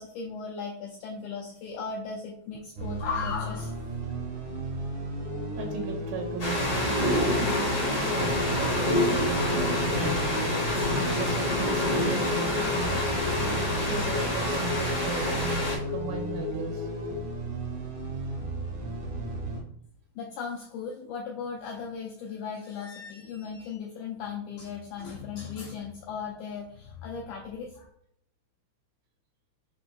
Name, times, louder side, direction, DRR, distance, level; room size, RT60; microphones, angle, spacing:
voice 1, 0.0-3.8 20.1-27.9, left 5 dB, 85° left, 0 dB, 1.7 m, -37 dB
sound 1, 2.8-19.6, right 2 dB, 70° right, 1.2 m, -35 dB
sound 2, 5.2-17.2, left 9 dB, 60° left, 2.1 m, -36 dB
voice 2, 5.6-7.5 8.1-10.2 10.7-13.0 13.8-16.9, right 5 dB, 90° right, 1 dB, 2.7 m, -37 dB
sound 3, 6.4-15.8, left 1 dB, 40° left, 1.4 m, -27 dB
5.8 x 3.8 x 2.2 m, 0.71 s
omnidirectional pair, 4.0 m